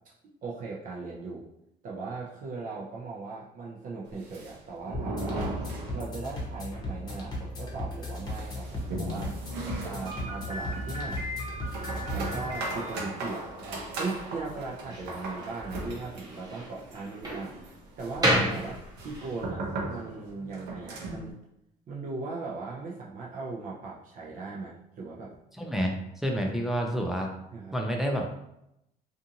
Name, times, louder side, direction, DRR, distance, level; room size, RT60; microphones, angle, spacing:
voice 1, 0.4-1.4 1.8-5.6 5.9-9.4 9.8-11.2 12.1-21.4 21.9-25.3 27.5-27.8, right 3 dB, 50° right, -4 dB, 0.5 m, -38 dB
sound 1, 4.1-6.5 6.7-6.8 7.1-7.2 7.7-21.3, right 2 dB, 85° right, 0.8 m, -38 dB
sound 2, 4.9-12.6, left 1 dB, 25° left, 0.8 m, -37 dB
Slam, 10.0-19.4, equal, 20° right, 0.9 m, -34 dB
voice 2, 25.6-27.3 27.7-28.3, equal, ahead, 1 dB, 0.4 m, -29 dB
2.6 x 2.5 x 2.7 m, 0.83 s
cardioid pair, 110°, 17 cm